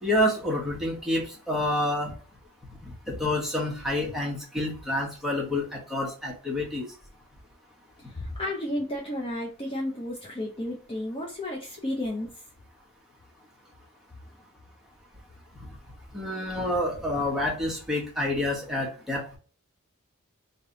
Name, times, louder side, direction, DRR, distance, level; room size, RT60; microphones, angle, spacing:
voice 1, 0.0-2.1 2.8-6.9 16.1-19.4, left 1 dB, ahead, -3 dB, 1.2 m, -28 dB
voice 2, 8.1-12.3, left 1 dB, 25° left, -2 dB, 0.7 m, -32 dB
3.2 x 2.9 x 3.9 m, 0.38 s
head